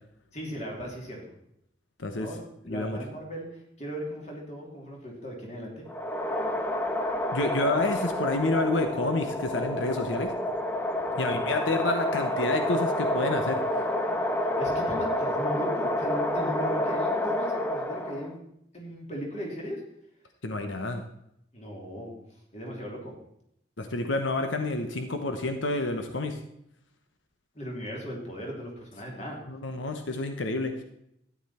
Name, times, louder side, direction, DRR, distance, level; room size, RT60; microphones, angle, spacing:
voice 1, 0.3-1.3 2.1-5.9 11.1-11.2 11.5-11.7 14.6-18.4 18.7-19.8 21.5-22.1 22.5-23.2 27.5-29.4, equal, 35° left, -1 dB, 3.0 m, -37 dB
voice 2, 2.7-3.0 7.3-10.3 11.2-13.6 20.4-21.0 23.8-26.4 29.5-30.8, left 2 dB, 90° left, 6 dB, 1.1 m, -29 dB
sound 1, 5.9-18.3, left 1 dB, 10° left, 0.7 m, -29 dB
13.0 x 9.9 x 4.3 m, 0.76 s
head